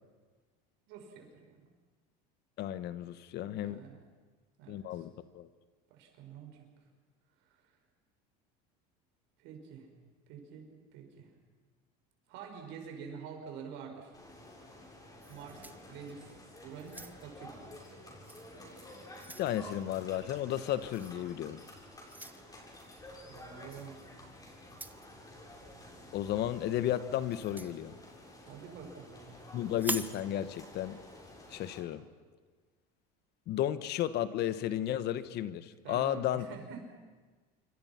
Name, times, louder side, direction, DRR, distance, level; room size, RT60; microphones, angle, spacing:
voice 1, 0.9-1.6 3.6-4.0 4.6-5.1 5.9-6.6 7.5-7.8 9.4-9.9 10.3-11.3 12.3-14.2 15.3-16.3 16.6-17.6 23.3-24.0 28.4-29.5 35.8-36.8, right 6 dB, 70° right, 4 dB, 5.5 m, -47 dB
voice 2, 2.6-3.8 4.7-5.5 19.4-21.6 26.1-28.0 29.5-31.0 31.5-32.0 33.5-36.5, left 12 dB, 55° left, 14 dB, 1.3 m, -33 dB
sound 1, 14.1-31.8, left 1 dB, 20° left, 6.9 m, -51 dB
sound 2, 15.2-16.3 16.8-17.4 18.2-18.4 18.8-19.5 20.9-21.2 22.1-22.4 23.7-23.9 24.7-25.1 27.3-27.7 29.7-30.2, right 2 dB, 10° right, 1.1 m, -42 dB
27.5 x 24.0 x 6.0 m, 1.4 s
supercardioid pair, 110°, 20 cm